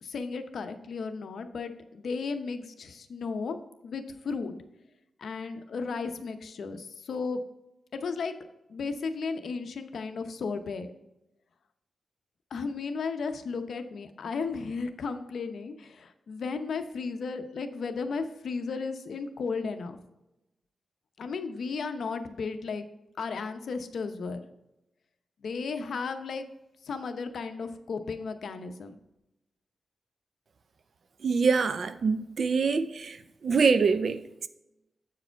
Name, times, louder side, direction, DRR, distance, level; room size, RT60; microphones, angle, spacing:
voice 1, 0.0-3.6 3.8-4.5 5.2-7.4 7.9-8.3 8.7-10.9 12.5-20.0 21.2-22.8 23.2-24.4 25.4-26.5 26.8-29.0, left 4 dB, 70° left, 0.7 m, -34 dB
voice 2, 31.2-33.2 33.4-34.5, right 5 dB, 55° right, 0.5 m, -25 dB
7.9 x 4.8 x 4.5 m
wide cardioid pair, 115°, 0 cm